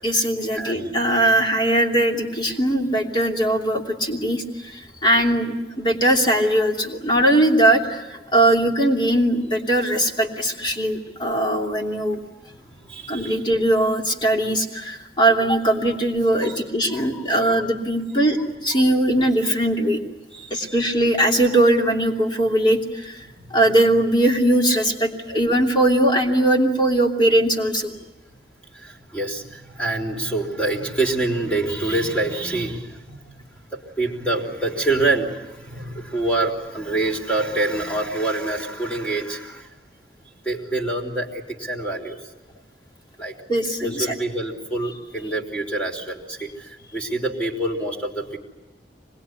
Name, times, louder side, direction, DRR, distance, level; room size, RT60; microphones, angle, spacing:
voice 1, 0.0-12.2 13.1-20.0 20.5-23.2 23.5-27.9 43.5-44.2, right 1 dB, 25° left, 1 dB, 3.0 m, -20 dB
voice 2, 0.5-0.9 12.5-13.4 16.4-16.6 16.9-17.2 20.3-20.8 28.7-33.4 33.7-39.7 40.5-42.2 43.2-43.3 43.8-48.4, right 2 dB, 5° left, -1 dB, 3.6 m, -26 dB
26.0 x 21.0 x 9.7 m, 1.1 s
head